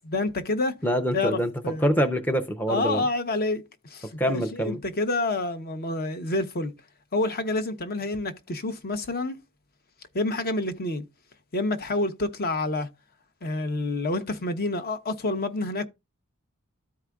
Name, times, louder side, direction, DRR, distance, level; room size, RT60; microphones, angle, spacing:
voice 1, 0.1-0.7 1.1-1.8 2.7-6.7 7.1-9.4 10.1-11.0 11.5-12.9 13.4-15.9, left 2 dB, 45° left, 0.8 m, -28 dB
voice 2, 0.8-1.5 1.8-3.0 4.2-4.8, equal, 10° left, 0.5 m, -25 dB
13.5 x 4.8 x 2.3 m
head